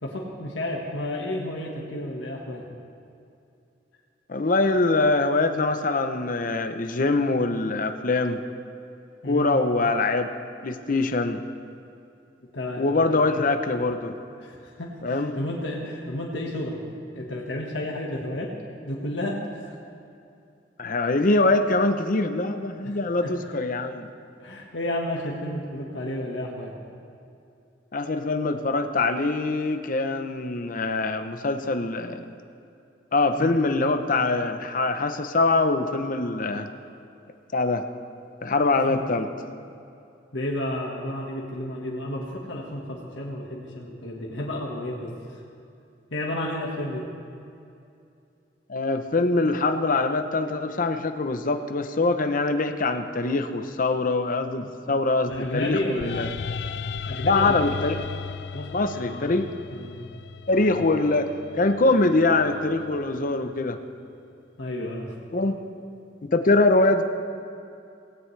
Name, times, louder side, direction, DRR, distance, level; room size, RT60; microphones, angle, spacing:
voice 1, 0.0-2.6 9.2-9.6 12.5-13.2 14.4-16.8 17.1-18.5 18.8-19.7 22.8-23.3 24.4-26.7 33.4-33.6 38.9-39.1 40.3-45.4 46.1-47.0 54.6-54.7 55.3-56.2 57.1-57.6 58.5-59.3 59.7-60.1 60.6-60.9 64.6-65.1, left 1 dB, 85° left, -2 dB, 1.5 m, -32 dB
voice 2, 4.3-8.4 9.2-10.3 10.6-11.4 12.8-14.2 15.0-15.3 20.8-24.1 27.9-32.3 33.1-36.7 37.5-37.9 38.4-39.3 48.7-56.3 57.2-58.0 58.7-59.5 60.5-63.8 65.3-65.6 66.3-67.0, left 2 dB, 45° left, 8 dB, 0.7 m, -23 dB
sound 1, 55.3-63.4, left 5 dB, 60° left, 0.4 m, -37 dB
17.0 x 17.0 x 3.3 m, 2.6 s
head